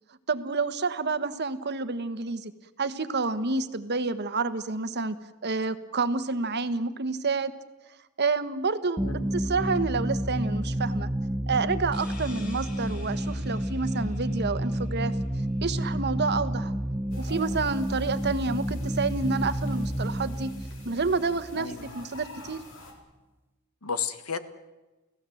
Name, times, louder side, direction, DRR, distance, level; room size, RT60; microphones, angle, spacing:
voice 1, 0.3-2.5 2.8-5.2 5.4-7.5 8.2-11.1 11.5-15.1 15.6-16.7 17.2-20.5 20.8-22.6, right 4 dB, 50° right, 11 dB, 1.3 m, -29 dB
sound 1, 9.0-22.3, equal, 10° right, 1.0 m, -30 dB
sound 2, 11.9-15.4, left 3 dB, 45° left, 5.7 m, -50 dB
sound 3, 17.1-22.9, left 2 dB, 65° left, 4.6 m, -48 dB
voice 2, 21.5-22.0 23.8-24.4, left 6 dB, 80° left, 11 dB, 1.6 m, -33 dB
29.5 x 16.5 x 7.8 m, 1.1 s
head